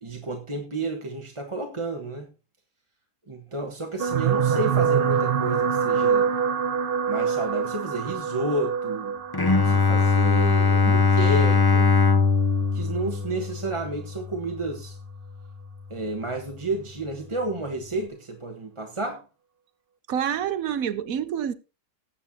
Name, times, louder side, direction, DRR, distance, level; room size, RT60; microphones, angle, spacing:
voice 1, 0.0-2.3 3.3-6.3 7.1-9.2 9.6-11.9 12.7-15.0 15.9-19.2, right 2 dB, 20° right, 1.2 m, -31 dB
sound 1, 4.0-12.4 13.2-13.4 13.7-13.8, right 7 dB, 50° right, 0.7 m, -26 dB
Bowed string instrument, 9.3-15.1, left 4 dB, 35° left, 0.4 m, -21 dB
voice 2, 20.1-21.5, right 9 dB, 65° right, 1.2 m, -27 dB
19.0 x 8.3 x 2.8 m
omnidirectional pair, 1.7 m